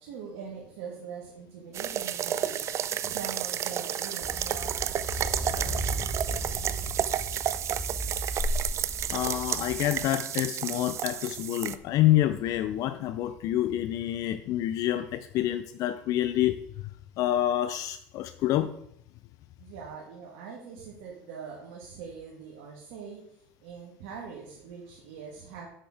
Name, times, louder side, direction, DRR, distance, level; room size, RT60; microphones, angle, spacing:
voice 1, 0.0-6.1 19.6-25.7, right 6 dB, 75° right, -2 dB, 1.6 m, -43 dB
sound 1, 1.7-11.8, right 10 dB, 45° right, 0.5 m, -31 dB
sound 2, 4.2-9.9, equal, 10° left, 2.8 m, -34 dB
voice 2, 9.1-16.6 17.2-18.7, left 13 dB, 60° left, 11 dB, 0.4 m, -27 dB
6.5 x 6.1 x 4.9 m, 0.70 s
hypercardioid pair, 80°, 7 cm